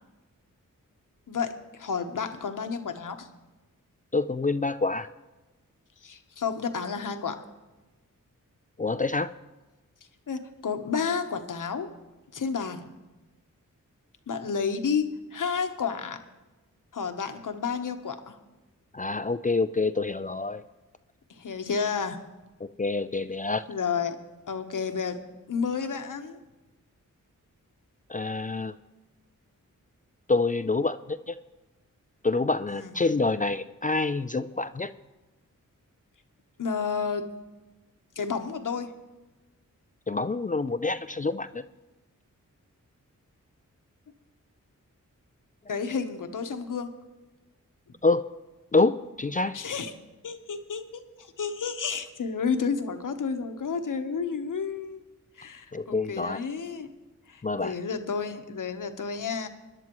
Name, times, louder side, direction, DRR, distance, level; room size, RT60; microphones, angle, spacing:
voice 1, 1.3-3.3 6.0-7.4 10.3-11.9 12.3-12.9 14.3-16.2 16.9-18.4 21.4-22.2 23.7-24.2 24.5-25.2 25.5-26.4 32.7-32.9 36.6-37.3 38.2-38.9 45.7-46.9 49.5-49.9 50.2-55.0 55.4-56.9 57.3-59.5, left 5 dB, 70° left, 7 dB, 1.1 m, -31 dB
voice 2, 4.1-5.1 8.8-9.3 18.9-20.6 22.8-23.6 28.1-28.7 30.3-31.4 32.2-34.9 40.1-41.6 48.0-48.2 48.7-49.6 55.7-56.4 57.4-57.7, left 3 dB, 25° left, 12 dB, 0.4 m, -27 dB
21.5 x 11.0 x 3.1 m, 1.1 s
cardioid pair, 60°, 33 cm